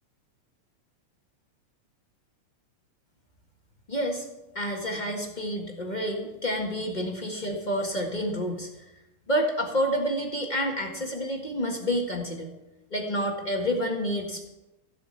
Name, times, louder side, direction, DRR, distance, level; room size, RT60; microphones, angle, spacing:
voice 1, 3.9-4.3 4.5-8.7 9.3-12.5 12.9-14.5, equal, 35° left, 1 dB, 0.7 m, -29 dB
15.5 x 8.4 x 6.7 m, 0.96 s
omnidirectional pair, 3.7 m